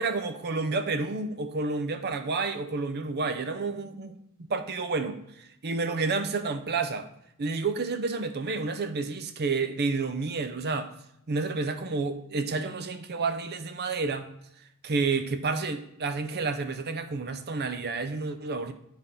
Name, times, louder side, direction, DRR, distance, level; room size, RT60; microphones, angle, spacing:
voice 1, 0.0-4.2 4.5-7.1 7.4-10.9 11.3-14.3 14.8-18.7, right 4 dB, 50° right, 0.6 m, -30 dB
8.9 x 3.5 x 5.3 m
head